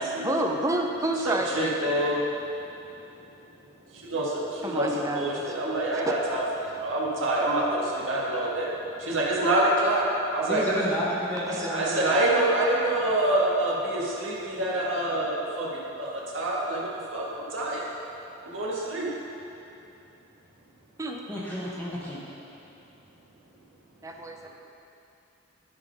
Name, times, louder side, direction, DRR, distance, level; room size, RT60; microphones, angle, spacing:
voice 1, 0.2-1.7 4.6-5.5 5.9-6.0 11.5-11.7 21.0-21.3 24.0-24.5, right 1 dB, 15° right, 2 dB, 0.5 m, -29 dB
voice 2, 1.2-2.3 4.0-8.7 9.0-10.0 10.3-10.6 11.6-15.7 16.0-17.8 18.5-19.1, right 1 dB, 70° right, -5 dB, 1.5 m, -26 dB
voice 3, 10.5-11.0 11.3-12.0 21.3-22.2, equal, 10° left, -7 dB, 0.9 m, -30 dB
11.0 x 3.8 x 5.2 m, 2.9 s
head